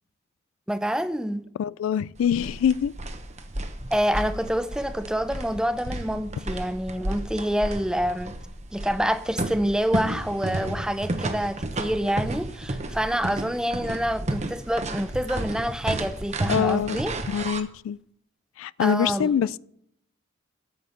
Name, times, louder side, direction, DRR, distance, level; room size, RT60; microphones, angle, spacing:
voice 1, 0.7-1.5 3.9-8.3 8.7-17.2 18.8-19.3, equal, 5° right, 0.6 m, -27 dB
voice 2, 1.6-2.9 16.5-17.0 17.3-18.0 18.6-19.6, left 8 dB, 85° left, 0.3 m, -24 dB
sound 1, 2.2-17.6, right 1 dB, 35° right, 1.0 m, -32 dB
9.5 x 7.6 x 6.5 m
head